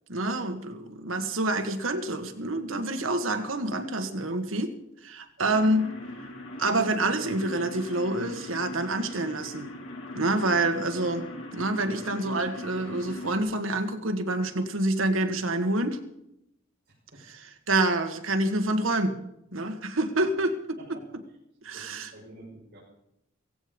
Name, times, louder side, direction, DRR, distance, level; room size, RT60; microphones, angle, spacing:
voice 1, 0.1-4.7 5.0-5.9 6.6-9.7 10.1-11.3 11.5-16.0 17.7-19.2 19.5-21.0 21.6-22.1, right 2 dB, 80° right, 7 dB, 1.7 m, -27 dB
sound 1, 5.5-13.4, left 1 dB, 85° left, 6.1 m, -40 dB
voice 2, 16.9-17.4 20.1-20.2 20.8-21.2 21.7-22.8, right 1 dB, 50° right, -6 dB, 6.1 m, -50 dB
16.5 x 16.0 x 5.3 m, 0.80 s
head